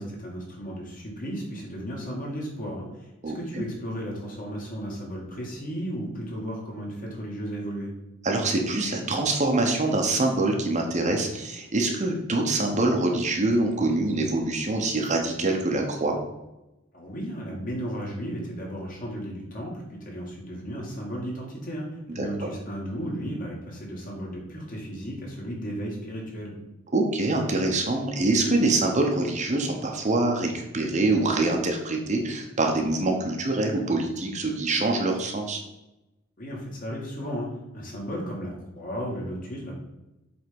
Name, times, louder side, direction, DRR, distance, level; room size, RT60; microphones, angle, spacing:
voice 1, 0.0-7.9 16.9-26.5 36.4-37.5 37.7-39.8, equal, 40° left, -2 dB, 2.1 m, -34 dB
voice 2, 3.2-3.6 8.2-16.2 22.2-22.5 26.9-35.6, right 2 dB, 35° right, 2 dB, 0.9 m, -25 dB
7.9 x 3.6 x 5.3 m, 0.97 s
head